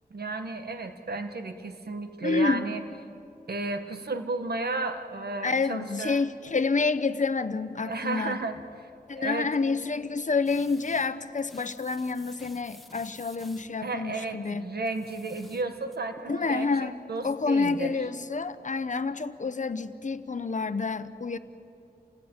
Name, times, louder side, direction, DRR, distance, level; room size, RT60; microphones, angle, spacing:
voice 1, 0.1-2.8 3.5-6.2 7.8-8.6 9.1-9.5 13.8-17.9, right 3 dB, 75° right, 7 dB, 1.8 m, -33 dB
voice 2, 2.2-2.7 5.4-8.4 9.1-14.6 16.3-17.0 17.2-21.4, left 4 dB, 50° left, 11 dB, 1.0 m, -28 dB
sound 1, 10.4-11.1 11.4-13.7 14.9-16.0, left 1 dB, ahead, 1.9 m, -52 dB
29.0 x 19.0 x 9.1 m, 2.6 s
wide cardioid pair, 75°, 16 cm